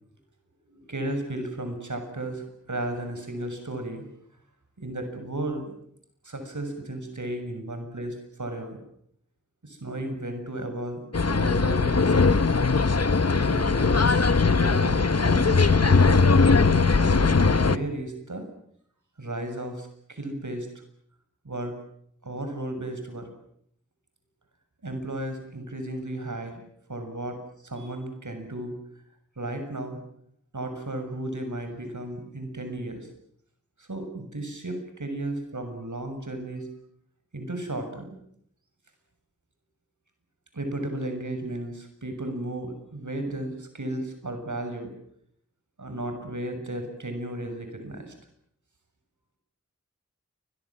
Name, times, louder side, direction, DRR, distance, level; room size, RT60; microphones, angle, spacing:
voice 1, 0.7-4.0 4.8-5.7 6.2-8.8 9.6-12.3 13.4-16.1 16.8-18.5 19.2-20.7 21.4-21.7 22.2-23.3 24.8-26.6 26.9-27.4 27.6-28.7 29.4-30.0 30.5-33.1 33.8-36.7 37.3-38.2 40.5-44.9 45.8-48.1, right 1 dB, 75° right, 7 dB, 6.9 m, -34 dB
sound 1, 11.1-17.8, left 4 dB, 55° left, 1.1 m, -20 dB
28.5 x 23.5 x 7.4 m, 0.70 s
wide cardioid pair, 55°, 30 cm